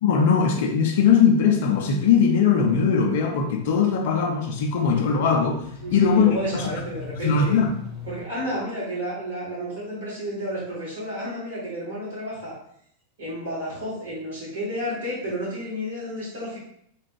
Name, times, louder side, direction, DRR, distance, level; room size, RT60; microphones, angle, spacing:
voice 1, 0.0-5.6 5.9-6.3 6.5-6.7 7.2-7.7, left 6 dB, 50° left, 0.5 m, -20 dB
sound 1, 2.0-8.2, left 3 dB, 5° right, 0.8 m, -42 dB
voice 2, 5.8-7.6 8.1-12.6 13.2-16.6, equal, 60° right, 1.2 m, -31 dB
2.4 x 2.4 x 3.2 m
figure-of-eight pair, 90°, 0 cm